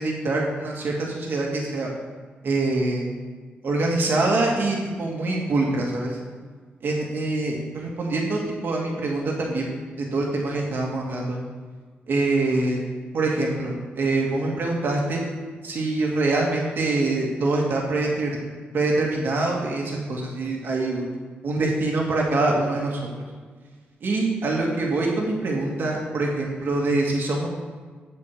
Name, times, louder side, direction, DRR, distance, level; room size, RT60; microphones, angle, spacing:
voice 1, 0.0-1.9 2.4-3.0 3.6-6.2 6.8-9.7 10.0-11.4 12.1-12.8 13.1-15.2 15.6-18.3 18.7-21.1 21.4-23.0 24.0-27.5, right 2 dB, 65° right, -1 dB, 2.0 m, -24 dB
8.2 x 5.1 x 6.3 m, 1.5 s
cardioid pair, 75°, 4 cm